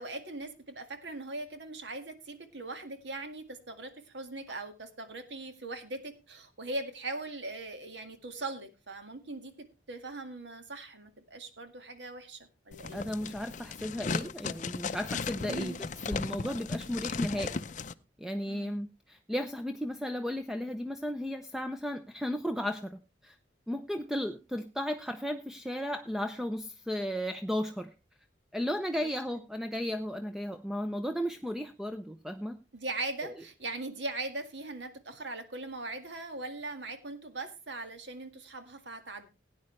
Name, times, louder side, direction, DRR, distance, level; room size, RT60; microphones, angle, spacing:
voice 1, 0.0-9.5 9.9-13.0 15.5-15.8 18.5-18.8 29.0-29.1 32.7-39.3, right 2 dB, 85° right, 7 dB, 1.9 m, -40 dB
sound 1, 12.7-17.9, left 4 dB, 45° left, 0.5 m, -36 dB
voice 2, 12.9-17.6 18.2-23.4 23.7-27.9 28.5-32.6 33.2-33.3, equal, 5° right, 8 dB, 0.5 m, -35 dB
17.0 x 9.5 x 3.2 m, 0.28 s
head